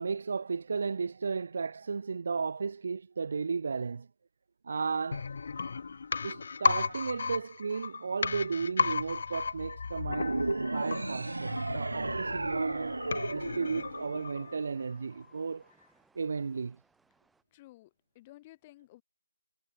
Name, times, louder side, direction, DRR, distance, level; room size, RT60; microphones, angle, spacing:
voice 1, 0.0-4.1 4.6-5.3 6.2-10.4 10.7-13.0 13.3-15.6 16.2-16.8, right 5 dB, 45° right, 0.3 m, -34 dB
sound 1, 5.1-14.8 15.1-15.2, left 5 dB, 40° left, 0.5 m, -35 dB
sound 2, 10.1-14.6, right 2 dB, 65° right, 0.7 m, -34 dB
sound 3, 12.0-17.4, right 4 dB, 5° right, 3.0 m, -69 dB
voice 2, 17.5-19.0, left 17 dB, 15° left, 3.0 m, -55 dB
figure-of-eight pair, 160°, 0 cm